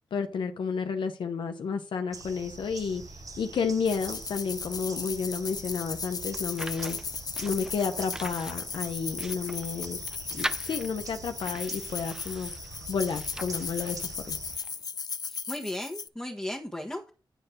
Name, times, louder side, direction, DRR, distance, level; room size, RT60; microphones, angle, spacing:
voice 1, 0.1-7.0 7.4-10.0 10.3-14.4, left 5 dB, 85° left, 1.0 m, -31 dB
sound 1, 2.1-14.6, right 3 dB, 45° right, 1.3 m, -45 dB
sound 2, 3.9-16.1, left 5 dB, 50° left, 0.6 m, -37 dB
sound 3, 6.3-14.8, right 1 dB, 10° right, 0.7 m, -42 dB
voice 2, 15.3-17.1, left 1 dB, 10° left, 1.5 m, -36 dB
10.0 x 4.6 x 6.5 m
wide cardioid pair, 100°, 8 cm